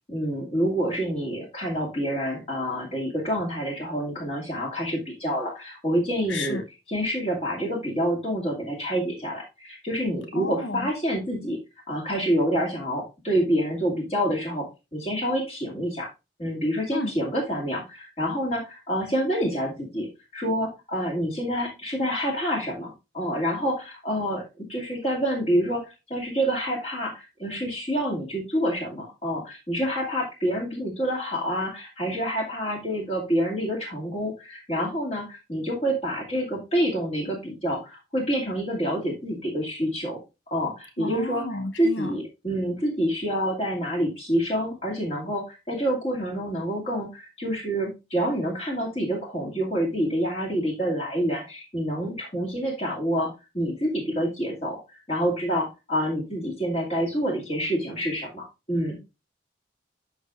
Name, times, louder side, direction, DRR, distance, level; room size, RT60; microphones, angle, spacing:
voice 1, 0.1-6.6 6.9-11.6 11.9-16.1 16.4-20.1 20.3-40.2 40.5-41.4 41.8-53.3 53.5-54.8 55.1-59.0, equal, 35° left, 2.3 m, -27 dB
voice 2, 6.3-6.6 10.3-10.9 16.9-17.1 41.0-42.1, left 2 dB, 85° left, 0.9 m, -32 dB
12.0 x 4.7 x 2.5 m
head